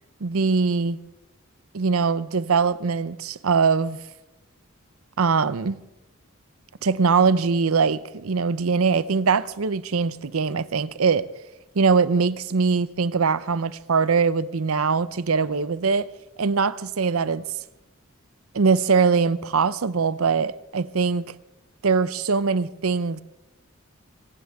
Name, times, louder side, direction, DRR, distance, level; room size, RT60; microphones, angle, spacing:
voice 1, 0.2-1.0 1.7-4.0 5.2-5.8 6.8-11.3 11.8-16.1 16.4-17.4 18.5-21.4 21.8-23.2, right 5 dB, 85° right, 0.6 m, -22 dB
25.0 x 16.0 x 3.6 m
head